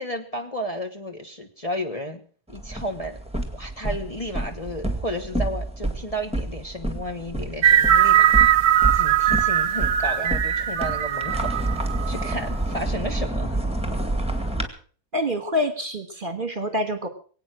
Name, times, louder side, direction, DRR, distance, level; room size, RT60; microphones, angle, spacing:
voice 1, 0.0-2.2 2.5-3.2 3.5-8.6 8.9-13.6, equal, 25° left, 3 dB, 1.3 m, -33 dB
sound 1, 2.5-14.7, right 1 dB, 5° right, 2.0 m, -29 dB
sound 2, 7.6-12.3, right 10 dB, 60° right, 1.2 m, -20 dB
voice 2, 15.1-17.1, left 1 dB, 35° right, 8 dB, 1.7 m, -26 dB
22.5 x 8.9 x 6.3 m, 0.43 s
omnidirectional pair, 1.7 m